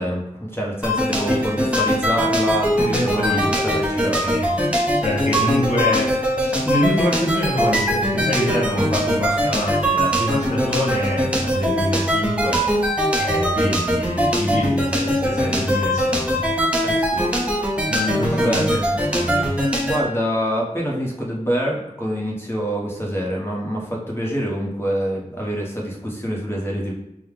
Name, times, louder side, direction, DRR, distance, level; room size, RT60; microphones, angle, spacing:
voice 1, 0.0-4.3 16.8-17.3 17.8-17.9 18.3-18.6 19.9-26.9, equal, 15° left, -2 dB, 1.2 m, -26 dB
sound 1, 0.8-20.0, equal, 10° right, 0.8 m, -21 dB
voice 2, 2.7-3.7 4.2-4.5 5.0-6.1 6.4-12.6 13.1-16.5 17.9-18.8 19.1-19.5, left 1 dB, 55° left, -6 dB, 1.6 m, -25 dB
5.4 x 2.3 x 3.6 m, 0.86 s
wide cardioid pair, 40°, 14 cm